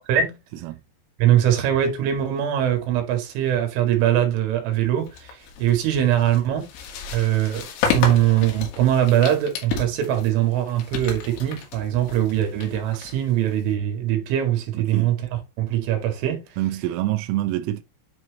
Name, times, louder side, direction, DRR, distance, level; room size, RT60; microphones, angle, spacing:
voice 1, 1.2-6.7 7.1-7.7 7.9-15.2 15.6-16.5, right 11 dB, 70° right, 4.4 m, -22 dB
sound 1, 5.1-13.7, left 6 dB, 70° left, 4.4 m, -32 dB
voice 2, 14.8-15.1 16.6-17.8, right 15 dB, 90° right, 3.5 m, -26 dB
10.0 x 4.6 x 2.9 m
omnidirectional pair, 5.9 m